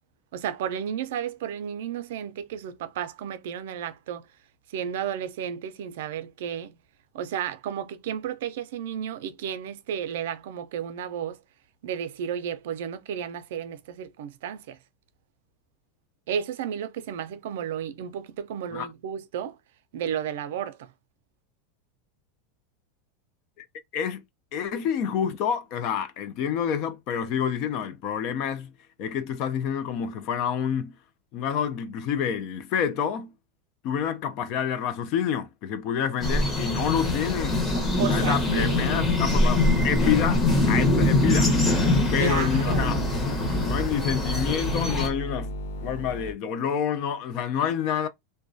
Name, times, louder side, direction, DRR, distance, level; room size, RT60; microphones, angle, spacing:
voice 1, 0.3-4.3 4.7-6.8 7.1-11.4 11.8-14.8 16.3-19.6 19.9-20.9 37.7-38.9 42.2-43.0, right 9 dB, 75° right, 0.4 m, -33 dB
voice 2, 23.9-24.2 24.5-28.7 29.0-30.9 31.3-33.3 33.8-37.6 38.1-40.4 40.7-41.5 42.1-43.0 43.6-45.5 45.8-48.1, left 8 dB, 40° left, 0.3 m, -28 dB
sound 1, 36.2-45.1, left 2 dB, 15° left, 0.8 m, -23 dB
sound 2, 41.0-46.3, left 1 dB, 75° left, 0.6 m, -35 dB
2.3 x 2.1 x 2.5 m
supercardioid pair, 160°, 0 cm